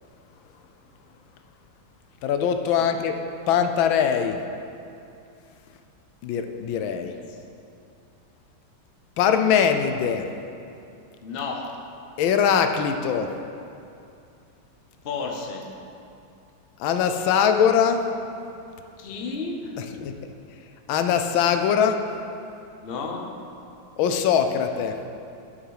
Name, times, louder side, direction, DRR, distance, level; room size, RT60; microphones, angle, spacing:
voice 1, 2.2-3.1 3.5-4.4 6.2-7.2 9.2-10.3 12.2-13.3 16.8-18.1 20.0-20.1 20.9-22.0 24.0-25.0, left 7 dB, 85° left, 7 dB, 1.4 m, -22 dB
voice 2, 11.2-11.8 15.0-15.8 19.0-20.1 22.8-23.3, left 4 dB, 50° left, 2 dB, 0.7 m, -32 dB
11.0 x 6.2 x 4.8 m, 2.6 s
omnidirectional pair, 2.1 m